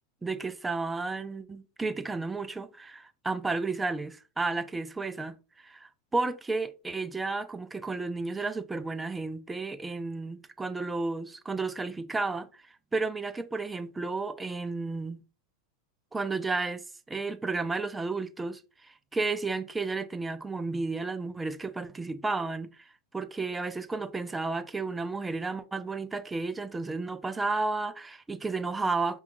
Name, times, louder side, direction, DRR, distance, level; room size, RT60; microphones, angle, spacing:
voice 1, 0.2-12.6 12.9-15.2 16.1-22.9 23.1-29.2, right 3 dB, 10° right, 0.3 m, -32 dB
5.6 x 2.3 x 2.2 m
figure-of-eight pair, 90°, 0 cm